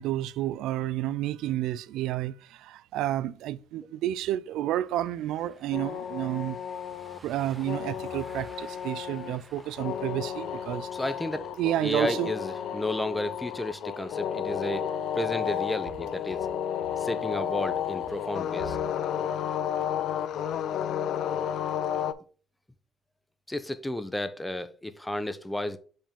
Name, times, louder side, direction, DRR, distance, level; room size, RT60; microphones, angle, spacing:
voice 1, 0.0-6.6 7.2-10.9 11.6-12.3, right 13 dB, 85° right, 0.3 m, -30 dB
Car passing by / Engine, 4.8-11.5, right 2 dB, 20° right, 0.8 m, -53 dB
sound 1, 5.7-22.1, left 9 dB, 65° left, 0.4 m, -32 dB
voice 2, 10.9-11.5 11.8-14.9 15.2-16.4 17.0-18.8 23.5-25.8, left 1 dB, 10° left, 0.5 m, -32 dB
5.1 x 3.6 x 5.3 m
cardioid pair, 125°, 0 cm